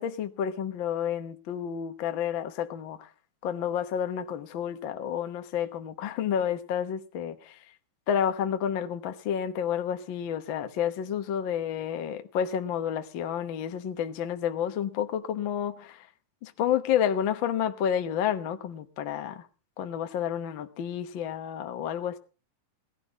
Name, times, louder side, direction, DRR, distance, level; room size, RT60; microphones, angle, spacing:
voice 1, 0.0-3.1 3.4-7.6 8.1-16.0 16.4-19.4 19.8-22.2, left 9 dB, 65° left, 1.2 m, -30 dB
17.0 x 12.5 x 5.0 m
omnidirectional pair, 3.7 m